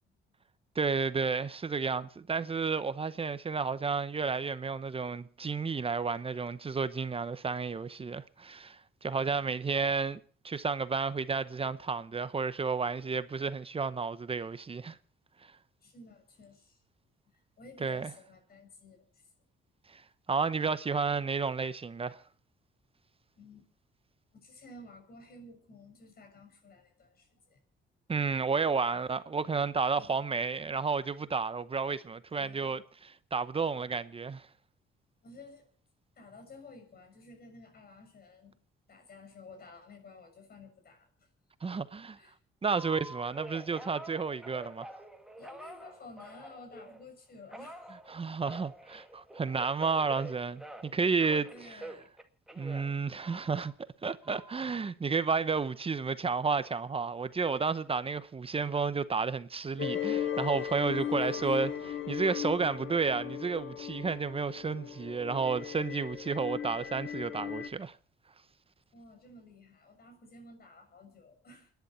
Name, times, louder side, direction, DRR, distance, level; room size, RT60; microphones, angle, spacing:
voice 1, 0.7-10.2 10.4-15.0 17.8-18.1 19.9-20.0 20.3-22.2 28.1-34.5 41.6-42.2 42.6-44.9 48.1-51.5 52.6-53.7 54.0-68.0, right 5 dB, 30° right, 0.8 m, -31 dB
voice 2, 15.8-16.8 17.3-19.3 23.4-23.7 24.3-27.6 30.0-30.2 32.4-32.9 35.2-35.6 36.2-38.6 38.9-41.3 42.2-42.4 45.4-48.0 51.4-52.1 61.0-61.8 68.9-71.7, left 2 dB, 50° left, 6.5 m, -53 dB
Telephone, 42.7-47.0 47.5-51.0 51.2-53.7 54.2-54.7, right 1 dB, ahead, 2.0 m, -47 dB
sound 1, 59.8-67.7, left 9 dB, 80° left, 1.9 m, -37 dB
28.5 x 10.5 x 4.3 m
cardioid pair, 90°, 20 cm